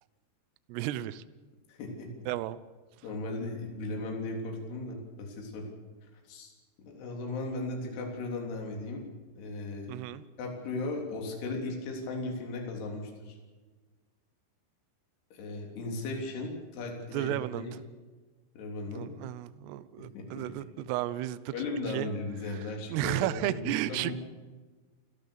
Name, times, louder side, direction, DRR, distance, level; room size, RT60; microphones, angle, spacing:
voice 1, 0.7-1.2 2.3-2.6 9.9-10.2 17.1-17.8 18.9-21.5 21.9-22.1 22.5-24.1, right 14 dB, 75° right, 15 dB, 2.7 m, -33 dB
voice 2, 1.7-2.1 3.0-5.7 6.1-6.5 6.8-9.0 9.4-9.9 10.4-13.4 15.3-17.8 18.6-19.1 20.0-20.5 20.8-20.9 21.5-24.1, left 2 dB, 65° left, 1 dB, 5.3 m, -37 dB
29.0 x 15.0 x 7.0 m, 1.3 s
omnidirectional pair, 5.3 m